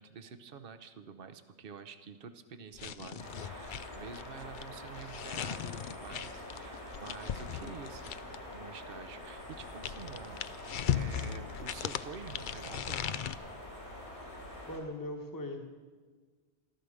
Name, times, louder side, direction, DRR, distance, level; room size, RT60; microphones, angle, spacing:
voice 1, 0.0-13.2, right 6 dB, 60° right, 10 dB, 1.0 m, -48 dB
sound 1, 2.7-8.5 9.4-13.4, left 9 dB, 60° left, 0.6 m, -38 dB
sound 2, 3.2-14.8, left 1 dB, 85° left, 4.0 m, -46 dB
voice 2, 14.7-15.7, left 1 dB, 20° left, 2 dB, 1.3 m, -39 dB
14.0 x 13.0 x 6.4 m, 1.5 s
omnidirectional pair, 1.1 m